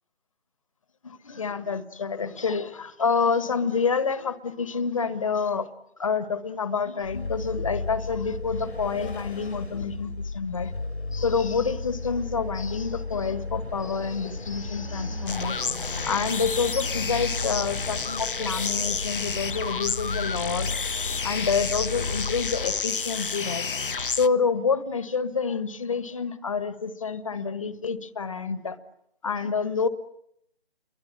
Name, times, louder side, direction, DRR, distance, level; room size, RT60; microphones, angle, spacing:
voice 1, 1.0-5.7 6.0-10.7 11.1-15.6 16.0-20.8 21.2-23.7 24.1-28.8 29.2-29.9, left 5 dB, 30° left, 13 dB, 1.4 m, -28 dB
Vehicle, 7.0-22.9, left 3 dB, 90° left, 3.3 m, -34 dB
Fixed-wing aircraft airplane, 11.6-19.0, right 2 dB, 65° right, 7.1 m, -48 dB
sound 1, 15.3-24.3, left 5 dB, 55° left, 1.0 m, -30 dB
28.5 x 23.5 x 8.7 m, 0.75 s
figure-of-eight pair, 165°, 32 cm